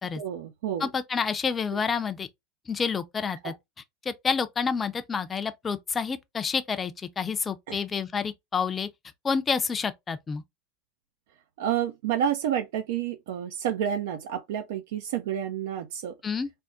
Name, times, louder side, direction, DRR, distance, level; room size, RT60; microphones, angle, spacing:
voice 1, 0.1-0.9 3.4-3.5 7.7-7.8 11.6-16.2, right 9 dB, 80° right, 0.4 m, -29 dB
voice 2, 0.8-2.3 2.7-3.5 4.0-8.9 9.2-10.4 16.2-16.5, left 6 dB, 25° left, 0.4 m, -29 dB
3.4 x 2.1 x 2.4 m
supercardioid pair, 115°, 0 cm